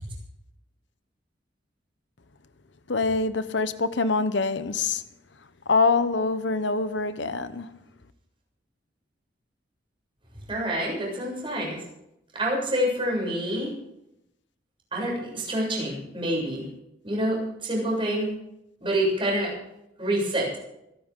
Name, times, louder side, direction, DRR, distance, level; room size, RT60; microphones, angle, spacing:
voice 1, 2.9-5.0 5.7-7.8, left 3 dB, 70° left, 0.9 m, -25 dB
voice 2, 10.5-11.8 12.3-13.7 14.9-16.7 17.0-18.3 18.8-19.5 20.0-20.6, right 1 dB, 25° right, 7.4 m, -27 dB
26.0 x 11.5 x 3.8 m
head